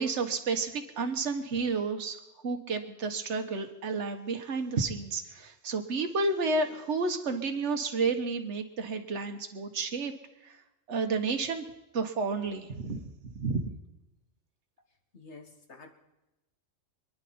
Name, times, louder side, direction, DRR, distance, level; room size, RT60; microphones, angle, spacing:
voice 1, 0.0-2.2 2.4-10.1 10.4-10.6 10.9-11.6 11.9-13.0 13.3-13.7, right 4 dB, 70° right, 5 dB, 1.5 m, -31 dB
voice 2, 15.1-15.9, left 3 dB, 65° left, 4 dB, 2.1 m, -49 dB
26.5 x 10.5 x 4.3 m, 0.98 s
omnidirectional pair, 1.3 m